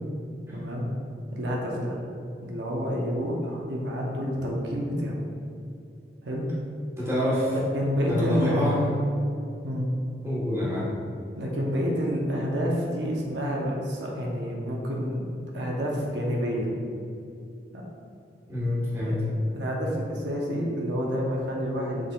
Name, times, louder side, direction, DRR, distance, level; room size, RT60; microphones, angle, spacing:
voice 1, 0.5-0.9 1.3-2.0 2.4-5.2 6.2-6.5 7.5-8.7 9.6-9.9 11.4-16.7 17.7-17.8 19.0-19.1 19.4-22.1, equal, 80° right, -2 dB, 0.7 m, -29 dB
voice 2, 7.0-7.5 8.1-8.9 10.2-10.9 18.5-19.2, left 1 dB, 15° right, -8 dB, 1.1 m, -27 dB
6.3 x 3.6 x 2.3 m, 2.5 s
head